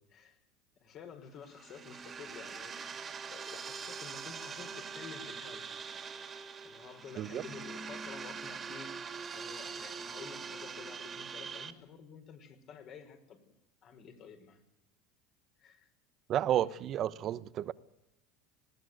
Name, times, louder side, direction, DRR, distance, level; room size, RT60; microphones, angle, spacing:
voice 1, 0.8-5.7 6.6-13.4 13.8-14.6 15.6-15.9, left 6 dB, 50° left, 5.0 m, -51 dB
sound 1, 1.4-11.7, right 5 dB, 30° right, 2.4 m, -43 dB
voice 2, 16.3-17.7, right 11 dB, 50° right, 0.9 m, -31 dB
20.0 x 16.0 x 9.4 m
supercardioid pair, 100°, 0 cm